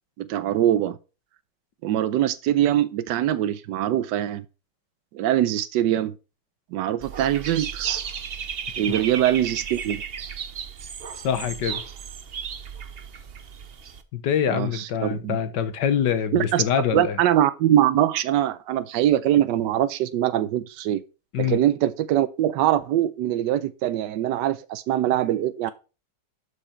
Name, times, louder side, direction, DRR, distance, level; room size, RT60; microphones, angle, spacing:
voice 1, 0.2-1.0 1.8-4.4 5.1-6.1 6.7-8.0 8.8-10.0 14.5-15.4 16.3-16.6 16.9-21.0 21.4-25.7, right 12 dB, 85° right, 1.3 m, -23 dB
Dog / Bird, 7.0-14.0, right 7 dB, 50° right, 0.8 m, -35 dB
voice 2, 11.2-11.8 14.1-17.2 21.3-21.6, left 8 dB, 80° left, 1.6 m, -25 dB
12.0 x 5.0 x 4.4 m
omnidirectional pair, 1.9 m